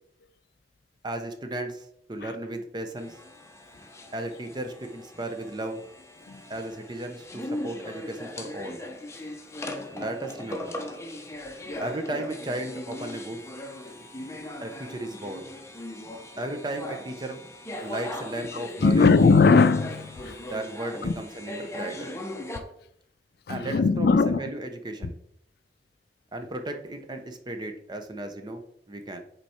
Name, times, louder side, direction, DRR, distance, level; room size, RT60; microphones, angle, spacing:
voice 1, 1.0-3.1 4.1-5.8 6.5-8.8 9.9-10.8 11.8-13.4 14.6-15.5 16.4-17.4 17.8-19.1 20.5-22.1 23.5-25.1 26.3-29.2, right 1 dB, 25° right, 0.7 m, -35 dB
sound 1, 3.0-22.6, left 1 dB, 15° left, 0.7 m, -39 dB
voice 2, 18.8-20.4 21.0-21.1 23.5-24.4, left 4 dB, 60° left, 0.4 m, -19 dB
5.9 x 4.6 x 4.3 m
head